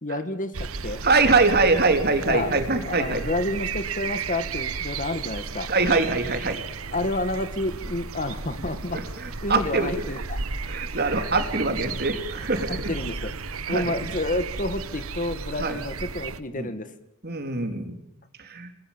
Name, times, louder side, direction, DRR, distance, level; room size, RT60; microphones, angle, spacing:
voice 1, 0.0-1.0 2.3-2.5 2.9-5.7 6.9-9.0 9.4-10.4 12.7-13.4 13.7-16.9, left 2 dB, 35° left, 11 dB, 1.9 m, -29 dB
sound 1, 0.5-16.4, right 4 dB, 70° right, 1.3 m, -34 dB
voice 2, 1.0-3.2 5.7-6.6 8.9-9.9 10.7-12.9 13.7-14.0 15.6-15.8 16.5-16.7 17.2-18.0 18.4-18.7, right 3 dB, 45° right, 6 dB, 3.5 m, -23 dB
29.5 x 21.0 x 7.4 m, 0.77 s
head